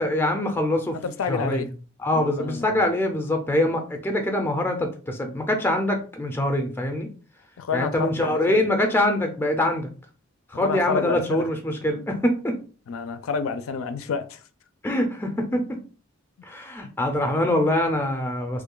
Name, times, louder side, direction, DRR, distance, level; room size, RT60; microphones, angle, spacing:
voice 1, 0.0-1.0 1.3-1.7 2.0-7.1 7.7-9.9 10.5-12.6 14.8-15.7 16.4-18.6, left 1 dB, 10° left, 0.4 m, -24 dB
voice 2, 0.9-1.7 2.1-2.8 7.6-8.7 10.5-11.4 12.9-14.4, left 5 dB, 80° left, 0.4 m, -29 dB
3.1 x 2.2 x 3.7 m
head